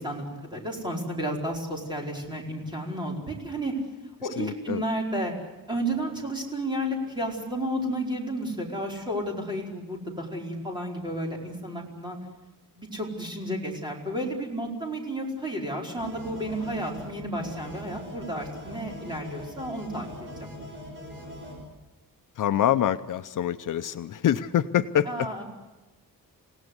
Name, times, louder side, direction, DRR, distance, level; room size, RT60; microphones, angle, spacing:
voice 1, 0.0-3.7 4.2-5.3 5.7-12.2 12.8-20.9 25.1-25.4, right 1 dB, 15° right, -1 dB, 4.8 m, -32 dB
voice 2, 4.4-4.8 22.4-25.3, left 10 dB, 60° left, 10 dB, 0.8 m, -25 dB
sound 1, 16.0-21.6, equal, 35° right, 6.8 m, -41 dB
28.0 x 18.0 x 8.1 m, 1.1 s
wide cardioid pair, 175°, 35 cm